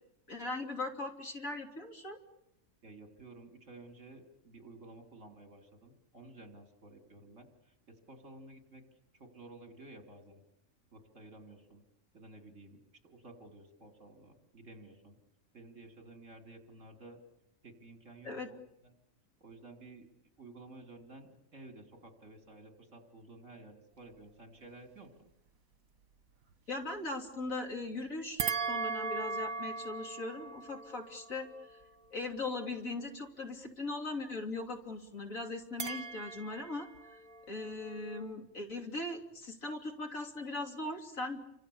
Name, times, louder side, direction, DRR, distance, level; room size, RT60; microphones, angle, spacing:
voice 1, 0.3-2.2 18.2-18.5 26.7-31.8 32.1-36.9 37.5-41.4, left 2 dB, 75° left, 3 dB, 3.6 m, -39 dB
voice 2, 2.8-10.4 10.9-11.8 12.1-15.2 15.5-17.2 17.6-18.6 18.8-18.9 19.4-20.1 20.4-25.3, right 2 dB, 65° right, 4 dB, 3.9 m, -53 dB
sound 1, 28.4-32.9 35.8-38.3, right 4 dB, 85° right, 1.7 m, -39 dB
30.0 x 25.5 x 7.2 m, 0.80 s
omnidirectional pair, 1.4 m